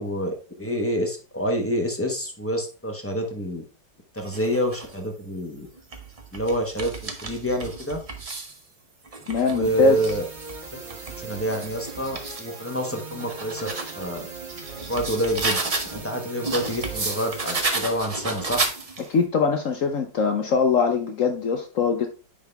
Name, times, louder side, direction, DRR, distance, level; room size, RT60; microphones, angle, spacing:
voice 1, 0.0-3.6 4.1-5.7 6.3-8.0 9.5-10.2 11.2-14.3 14.9-15.6 15.9-18.6, equal, 10° left, 2 dB, 0.8 m, -27 dB
sound 1, 4.2-5.0 5.7-8.6 9.1-12.5 13.0-16.0 16.4-19.2, right 3 dB, 55° right, 0.4 m, -32 dB
voice 2, 9.3-10.0 19.1-22.1, left 5 dB, 65° left, 6 dB, 0.8 m, -22 dB
sound 2, 9.6-17.6, right 4 dB, 30° right, 1.0 m, -40 dB
9.7 x 3.9 x 3.4 m, 0.36 s
omnidirectional pair, 2.1 m